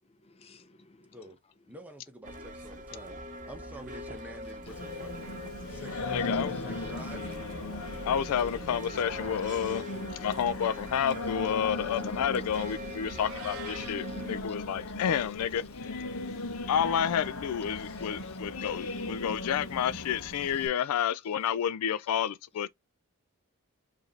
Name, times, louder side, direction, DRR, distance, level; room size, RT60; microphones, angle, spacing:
voice 1, 0.2-1.2 13.9-14.2 16.4-16.7 18.2-18.3 18.6-18.7, left 4 dB, 25° left, 0.5 m, -58 dB
voice 2, 1.7-3.2 3.5-5.4 5.7-7.3, right 1 dB, 5° right, 0.9 m, -48 dB
sound 1, 2.2-14.4, equal, 35° right, 0.8 m, -43 dB
Singing, 4.7-20.7, left 2 dB, 65° left, 0.8 m, -38 dB
voice 3, 6.1-6.5 8.1-9.9 10.2-15.6 16.7-22.7, left 8 dB, 90° left, 0.3 m, -30 dB
Meow, 13.2-14.0, right 9 dB, 70° right, 0.5 m, -45 dB
4.8 x 2.7 x 3.2 m
head